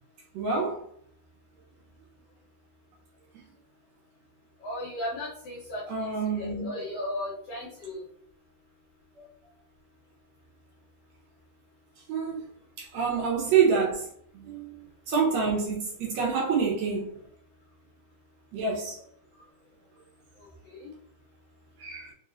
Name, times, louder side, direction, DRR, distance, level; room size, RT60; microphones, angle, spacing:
voice 1, 0.3-0.8 5.9-6.8 9.2-9.3 12.1-12.4 12.8-14.1 14.3-17.1 18.5-19.0 21.8-22.1, right 5 dB, 70° right, 1.8 m, -27 dB
voice 2, 4.6-5.8 6.4-8.0, left 1 dB, 70° left, 1.6 m, -35 dB
4.7 x 3.0 x 2.4 m
omnidirectional pair, 3.6 m